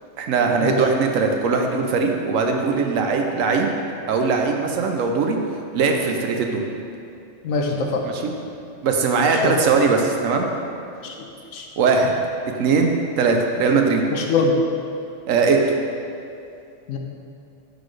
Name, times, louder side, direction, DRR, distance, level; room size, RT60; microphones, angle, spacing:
voice 1, 0.2-3.7 4.1-5.4 5.7-6.6 8.0-8.3 8.8-10.5 11.8-12.1 12.6-14.0 15.3-15.6, right 4 dB, 90° right, 3 dB, 1.1 m, -20 dB
voice 2, 7.4-8.0 9.4-9.5 11.0-11.1 11.5-11.7 14.1-14.6 16.9-17.0, left 4 dB, 90° left, 1 dB, 1.1 m, -22 dB
9.7 x 4.1 x 3.2 m, 2.7 s
omnidirectional pair, 1.3 m